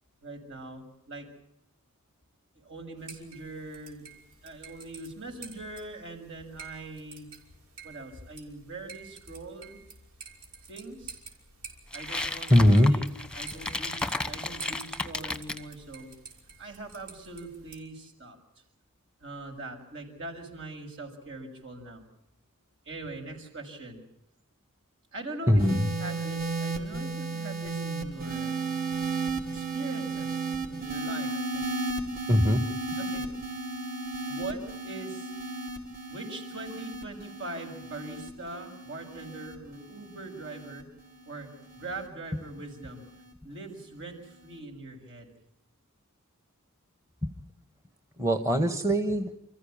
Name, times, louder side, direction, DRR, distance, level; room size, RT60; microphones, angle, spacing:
voice 1, 0.2-1.3 2.6-4.1 4.4-7.3 7.8-9.8 10.7-11.2 11.9-16.1 16.6-18.4 19.2-22.1 22.9-24.0 25.1-28.8 29.5-31.6 33.0-33.3 34.3-35.3 36.1-40.9 41.3-43.0 43.4-45.3, right 2 dB, 60° right, 4 dB, 7.1 m, -42 dB
sound 1, 3.0-17.8, right 5 dB, 80° right, 5.9 m, -49 dB
sound 2, 11.9-15.6, left 2 dB, 5° left, 1.2 m, -34 dB
voice 2, 12.5-12.9 25.5-25.8 32.3-32.6 47.2-47.3 48.2-49.3, equal, 15° right, 7 dB, 1.6 m, -21 dB
sound 3, 25.6-42.1 43.0-43.3, right 3 dB, 45° right, 4.8 m, -34 dB
29.5 x 15.0 x 8.8 m, 0.81 s
head